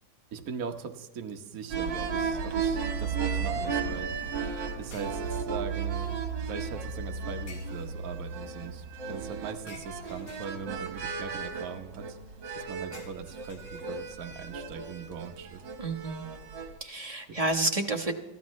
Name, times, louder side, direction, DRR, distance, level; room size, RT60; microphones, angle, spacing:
voice 1, 0.3-4.3 4.8-6.1 6.4-12.2 12.5-15.6 17.3-17.4, right 6 dB, 50° right, 4 dB, 1.3 m, -40 dB
sound 1, 1.7-16.8, right 5 dB, 65° right, 2.1 m, -34 dB
sound 2, 4.9-5.8 7.5-8.2 9.7-10.9 12.9-14.2, left 4 dB, 90° left, 2.3 m, -52 dB
voice 2, 15.8-16.2 16.8-18.1, right 2 dB, 25° right, 4 dB, 1.0 m, -30 dB
23.0 x 15.5 x 3.2 m, 1.1 s
omnidirectional pair, 2.1 m